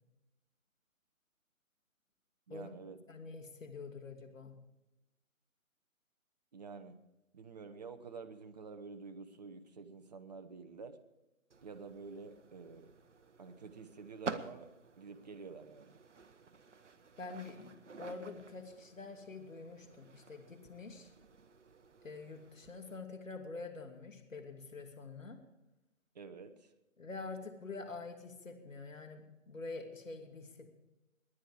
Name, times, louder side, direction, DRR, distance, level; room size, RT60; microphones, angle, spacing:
voice 1, 2.5-3.0 6.5-7.0 7.3-11.0 11.6-12.9 13.4-14.7 15.0-16.0 26.1-26.7, right 5 dB, 30° right, 8 dB, 1.0 m, -49 dB
voice 2, 3.1-4.5 17.2-21.1 22.0-25.4 27.0-30.7, left 3 dB, 70° left, 4 dB, 2.8 m, -46 dB
sound 1, 11.5-23.0, right 5 dB, 60° right, 1.1 m, -50 dB
19.5 x 10.0 x 4.9 m, 0.97 s
figure-of-eight pair, 150°, 41 cm